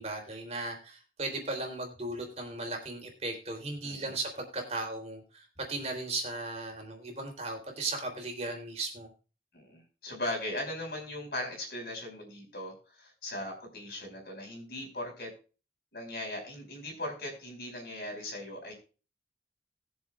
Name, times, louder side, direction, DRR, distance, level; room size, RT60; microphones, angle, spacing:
voice 1, 0.0-9.1, right 2 dB, 35° right, 2 dB, 3.2 m, -36 dB
voice 2, 3.8-4.1 9.5-15.3 15.9-18.7, left 1 dB, 60° left, 1 dB, 5.2 m, -39 dB
21.0 x 7.1 x 2.4 m, 0.34 s
head